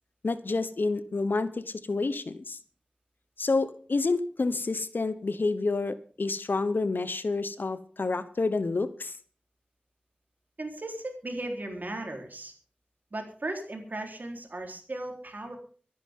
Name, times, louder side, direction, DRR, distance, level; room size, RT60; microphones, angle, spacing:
voice 1, 0.2-1.5 1.9-2.6 3.4-9.1, left 3 dB, 75° left, 13 dB, 1.0 m, -28 dB
voice 2, 10.6-12.5 13.1-15.6, right 2 dB, 60° right, 2 dB, 3.9 m, -36 dB
24.0 x 10.0 x 3.8 m, 0.43 s
wide cardioid pair, 50°, 3 cm